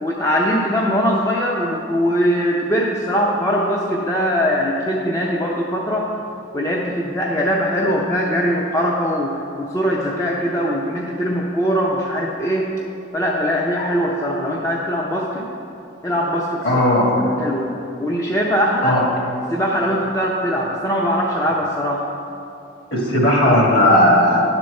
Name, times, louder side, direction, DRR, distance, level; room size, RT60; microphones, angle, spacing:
voice 1, 0.0-6.1 6.5-12.7 13.1-15.5 16.0-16.8 17.2-17.7 18.0-19.0 19.5-22.0, equal, 15° left, -3 dB, 0.6 m, -21 dB
voice 2, 16.6-17.1 18.8-19.0 22.9-24.4, left 1 dB, 55° left, -3 dB, 2.0 m, -15 dB
10.0 x 4.5 x 6.4 m, 2.7 s
head